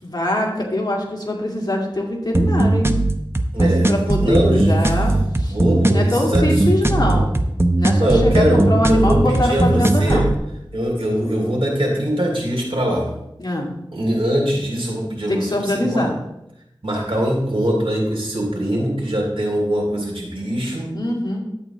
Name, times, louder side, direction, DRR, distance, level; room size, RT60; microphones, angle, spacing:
voice 1, 0.0-3.1 3.6-5.1 5.4-5.6 5.9-7.3 7.8-10.3 13.4-13.7 15.3-16.1 20.9-21.4, left 1 dB, 50° left, -1 dB, 2.2 m, -23 dB
sound 1, 2.3-10.3, right 2 dB, 25° right, 0.7 m, -18 dB
voice 2, 3.5-4.7 5.0-7.2 8.0-10.3 10.7-13.1 13.9-16.1 16.8-20.9, equal, 75° right, -2 dB, 2.8 m, -22 dB
11.5 x 8.7 x 3.0 m, 0.82 s
wide cardioid pair, 50°, 9 cm